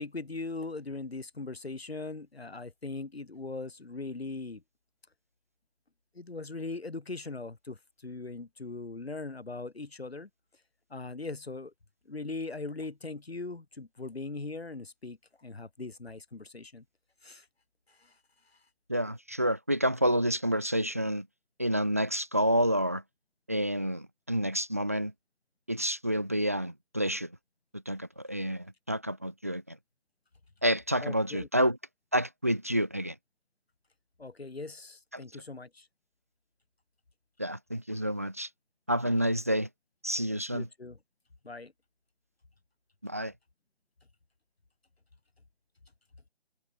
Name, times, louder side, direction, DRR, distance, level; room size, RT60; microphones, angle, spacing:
voice 1, 0.0-4.6 6.1-10.3 10.9-11.7 12.1-16.8 17.2-17.5 17.9-18.1 31.0-31.5 34.2-35.9 40.5-41.0 41.4-41.7, left 3 dB, 65° left, 6.3 m, -40 dB
voice 2, 18.9-21.3 21.6-23.0 23.5-25.1 25.7-27.3 27.7-29.8 30.6-31.8 32.1-33.2 35.1-35.2 37.4-38.5 38.9-39.7 40.0-40.7 43.0-43.3, equal, 15° right, 0.8 m, -29 dB
figure-of-eight pair, 170°, 33 cm